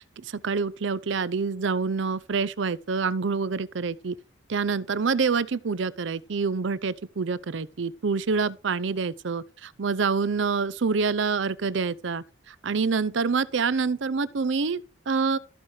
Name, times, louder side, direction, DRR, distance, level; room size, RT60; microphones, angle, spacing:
voice 1, 0.2-4.2 4.5-15.4, right 5 dB, 75° right, 0.6 m, -27 dB
13.5 x 5.6 x 4.9 m
head